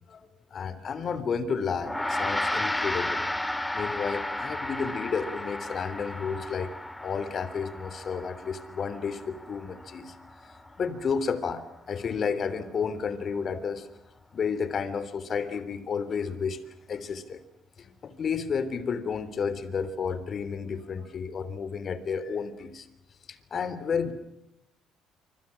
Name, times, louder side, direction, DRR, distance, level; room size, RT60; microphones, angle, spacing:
voice 1, 0.1-3.2 3.7-6.7 7.0-10.1 10.4-13.9 14.3-16.6 16.9-17.4 17.8-22.9 23.3-24.1, left 6 dB, 50° left, 13 dB, 3.4 m, -31 dB
Gong, 1.8-11.4, left 1 dB, 10° left, 2.9 m, -34 dB
27.5 x 25.5 x 6.1 m, 0.84 s
hypercardioid pair, 60°, 0 cm